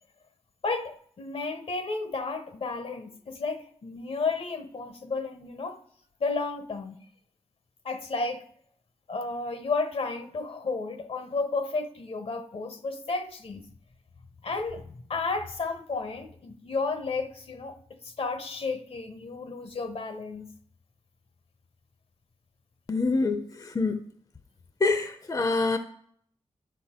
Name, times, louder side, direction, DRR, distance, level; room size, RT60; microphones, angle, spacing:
voice 1, 0.6-5.8 6.2-7.0 7.8-8.4 9.1-13.6 14.4-20.5, left 3 dB, 60° left, 0.9 m, -32 dB
voice 2, 22.9-24.0 24.8-25.8, left 3 dB, 35° left, 0.6 m, -26 dB
11.0 x 5.4 x 4.3 m
cardioid pair, 80°, 11 cm